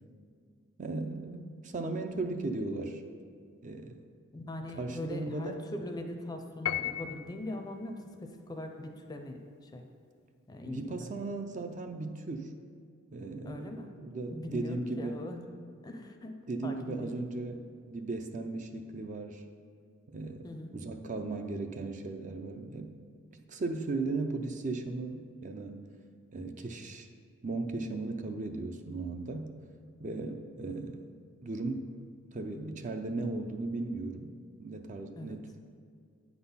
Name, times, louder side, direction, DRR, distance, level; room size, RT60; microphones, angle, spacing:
voice 1, 0.8-3.0 3.6-4.0 4.8-5.7 10.6-12.5 13.1-15.2 16.5-19.4 20.1-20.5 20.7-22.9 23.3-25.8 26.3-27.1 27.4-29.5 30.0-31.0 31.4-31.9 32.3-34.3 34.6-35.5, right 3 dB, 35° right, 6 dB, 0.4 m, -36 dB
voice 2, 4.3-9.8 10.5-11.1 13.4-13.9 14.3-15.5 15.8-16.3 16.6-17.2 20.4-20.7 30.6-30.8 35.2-35.4, left 1 dB, 20° left, 5 dB, 0.5 m, -41 dB
Piano, 6.7-7.6, left 11 dB, 70° left, 0.4 m, -34 dB
8.9 x 4.0 x 5.5 m, 2.1 s
head